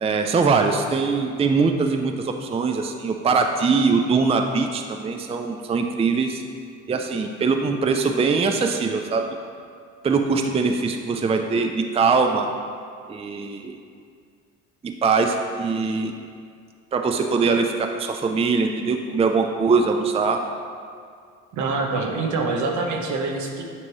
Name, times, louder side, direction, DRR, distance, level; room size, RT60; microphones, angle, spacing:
voice 1, 0.0-6.4 6.9-9.3 10.0-12.5 13.1-13.8 14.8-16.1 16.9-20.4, right 4 dB, 20° right, 5 dB, 0.4 m, -22 dB
voice 2, 21.5-23.6, right 3 dB, 75° right, 1 dB, 1.0 m, -25 dB
8.5 x 3.0 x 4.7 m, 2.2 s
cardioid pair, 90°, 30 cm